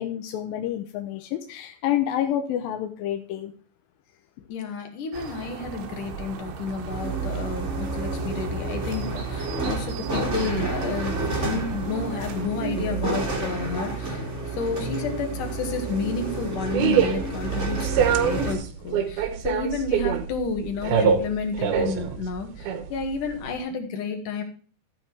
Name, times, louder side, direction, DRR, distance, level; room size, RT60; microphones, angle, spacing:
voice 1, 0.0-3.5, left 11 dB, 80° left, 6 dB, 2.1 m, -28 dB
voice 2, 4.5-14.2 14.6-24.4, left 5 dB, 55° left, 4 dB, 2.8 m, -31 dB
sound 1, 5.1-12.5, right 4 dB, 90° right, 3.5 m, -37 dB
sound 2, 6.9-18.5, right 3 dB, 25° right, 1.6 m, -29 dB
sound 3, 15.9-23.6, right 8 dB, 70° right, 2.7 m, -25 dB
14.5 x 5.3 x 4.5 m, 0.42 s
omnidirectional pair, 5.1 m